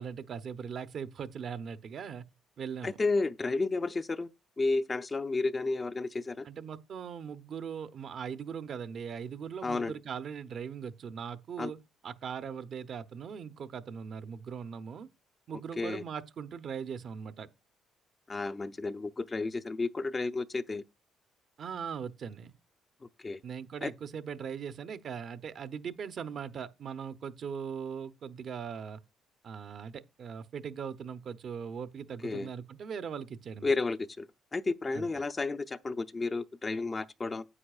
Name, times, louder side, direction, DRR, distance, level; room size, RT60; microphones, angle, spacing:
voice 1, 0.0-2.2 2.6-3.0 6.4-11.8 12.0-15.1 15.5-17.5 21.6-22.5 23.4-29.0 29.4-33.7 34.9-35.1, right 7 dB, 60° right, 0.7 m, -40 dB
voice 2, 2.8-4.3 4.6-6.5 9.6-9.9 11.6-11.7 15.8-16.0 18.3-20.8 23.2-23.4 23.8-23.9 32.2-32.5 33.6-37.4, left 3 dB, 30° left, 0.5 m, -32 dB
9.8 x 8.4 x 2.4 m
cardioid pair, 80°, 0 cm